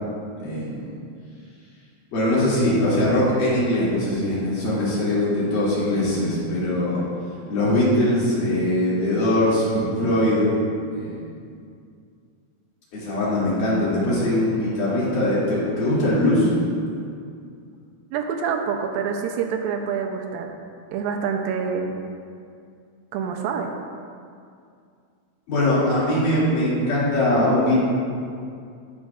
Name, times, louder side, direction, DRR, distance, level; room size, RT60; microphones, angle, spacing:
voice 1, 0.4-0.9 2.1-7.0 7.5-10.5 10.9-11.4 12.9-16.5 25.5-27.8, left 1 dB, 55° left, -9 dB, 3.9 m, -21 dB
voice 2, 18.1-20.5 20.9-22.0 23.1-23.7, right 6 dB, 80° right, 3 dB, 2.1 m, -26 dB
19.0 x 6.4 x 2.4 m, 2.3 s
omnidirectional pair, 4.7 m